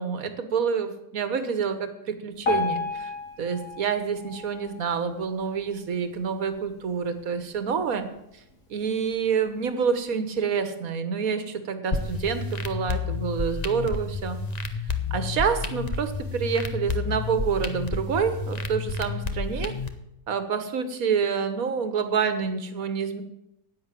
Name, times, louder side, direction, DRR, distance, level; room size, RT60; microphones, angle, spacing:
voice 1, 0.0-3.1 3.4-8.1 8.7-14.4 15.1-19.7 20.3-23.2, right 6 dB, 70° right, 10 dB, 1.7 m, -27 dB
Piano, 2.4-5.5 6.1-6.2 6.5-6.6 7.3-7.4 8.0-8.1, left 4 dB, 60° left, 3.6 m, -32 dB
sound 1, 11.9-19.9, left 4 dB, 30° left, 0.9 m, -30 dB
10.5 x 8.8 x 9.1 m, 0.85 s
omnidirectional pair, 1.6 m